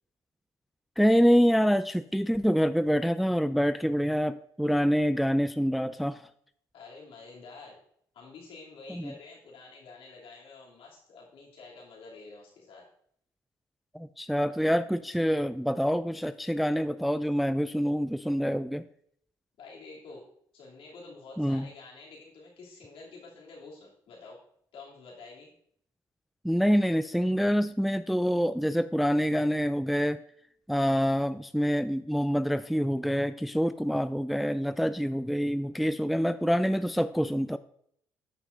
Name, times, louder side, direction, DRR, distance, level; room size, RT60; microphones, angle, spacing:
voice 1, 1.0-6.2 8.9-9.1 13.9-18.8 21.4-21.7 26.4-30.2 30.7-37.6, equal, ahead, 13 dB, 0.3 m, -26 dB
voice 2, 6.7-7.8 8.1-12.9 19.6-20.2 20.5-24.4 24.7-25.5, left 3 dB, 65° left, -4 dB, 3.1 m, -48 dB
13.5 x 6.0 x 2.7 m, 0.67 s
hypercardioid pair, 60°, 10 cm